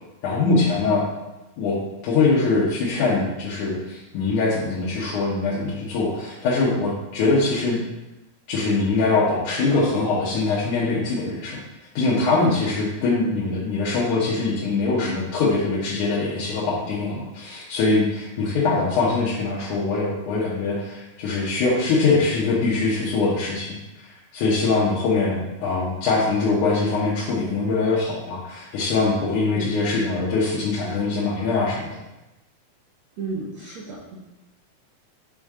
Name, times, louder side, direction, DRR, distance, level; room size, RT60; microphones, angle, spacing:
voice 1, 0.2-1.1 1.6-1.8 2.0-7.8 8.5-11.6 12.0-23.8 24.3-31.9, left 3 dB, 65° left, -7 dB, 2.1 m, -22 dB
voice 2, 33.2-34.2, right 3 dB, 70° right, -6 dB, 1.7 m, -33 dB
6.4 x 5.1 x 3.6 m, 1.0 s
omnidirectional pair, 4.3 m